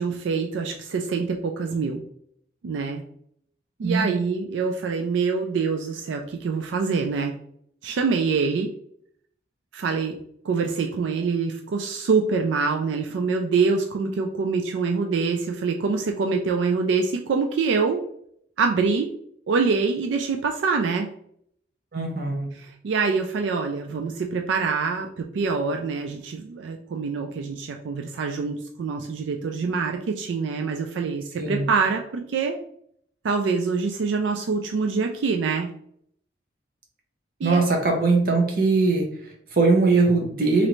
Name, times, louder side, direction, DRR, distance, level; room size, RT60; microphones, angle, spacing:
voice 1, 0.0-2.0 2.6-3.0 3.8-7.3 7.8-8.7 9.7-10.2 10.4-18.0 18.6-19.1 19.5-21.1 22.8-32.6 33.2-35.7 37.4-37.6, right 4 dB, 90° right, 4 dB, 0.3 m, -25 dB
voice 2, 3.8-4.2 21.9-22.5 31.4-31.7 37.4-40.7, right 3 dB, 50° right, 2 dB, 0.8 m, -21 dB
3.1 x 2.6 x 3.0 m, 0.67 s
head